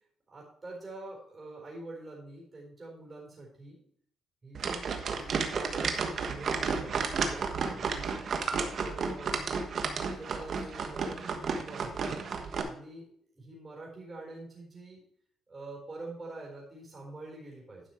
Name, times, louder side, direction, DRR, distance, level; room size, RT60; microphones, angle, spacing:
voice 1, 0.3-3.8 4.4-8.2 8.5-9.4 9.9-12.0 12.6-13.1 13.3-15.0 15.5-17.8, right 2 dB, 25° right, -3 dB, 4.2 m, -45 dB
sound 1, 4.5-12.6, right 5 dB, 55° right, 1.3 m, -32 dB
11.0 x 5.9 x 4.5 m, 0.64 s
cardioid pair, 90°, 0 cm